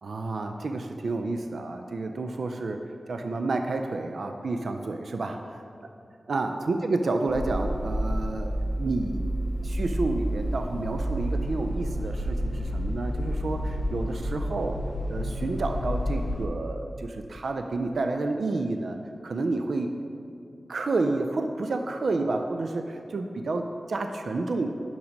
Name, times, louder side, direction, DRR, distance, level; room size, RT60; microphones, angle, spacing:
voice 1, 0.0-5.4 6.3-8.5 8.8-9.2 9.6-14.8 15.1-19.0 19.2-19.9 20.7-24.7, right 3 dB, 65° right, 5 dB, 0.3 m, -30 dB
sound 1, 7.3-16.5, equal, 70° left, 0.6 m, -30 dB
5.8 x 5.4 x 5.1 m, 2.5 s
wide cardioid pair, 125°, 0 cm